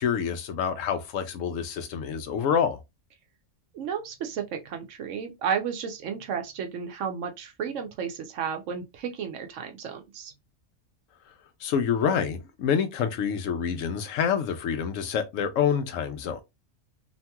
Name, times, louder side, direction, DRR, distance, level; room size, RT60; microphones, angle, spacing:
voice 1, 0.0-2.8 11.6-16.4, left 7 dB, 80° left, 1.0 m, -27 dB
voice 2, 3.7-10.3, right 7 dB, 75° right, 1.0 m, -33 dB
2.9 x 2.8 x 2.2 m
omnidirectional pair, 1.3 m